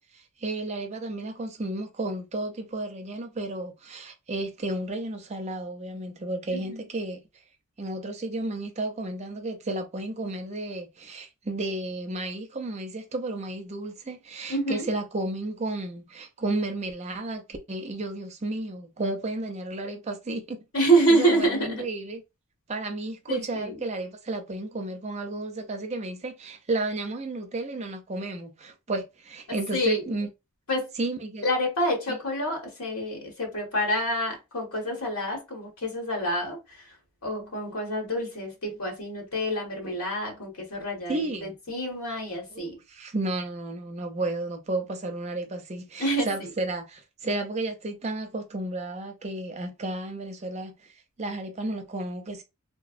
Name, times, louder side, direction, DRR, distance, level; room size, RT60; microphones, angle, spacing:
voice 1, 0.4-7.2 7.8-20.6 21.1-22.2 22.7-30.3 31.0-31.5 32.1-32.2 41.1-41.5 42.5-50.9 51.2-52.4, right 2 dB, 30° right, 0.5 m, -32 dB
voice 2, 6.5-6.8 14.5-14.9 20.7-21.9 23.3-23.9 29.5-30.1 30.7-30.9 31.4-37.0 37.2-42.8 46.0-46.5, right 1 dB, 85° left, 1.4 m, -27 dB
3.2 x 2.0 x 2.4 m
head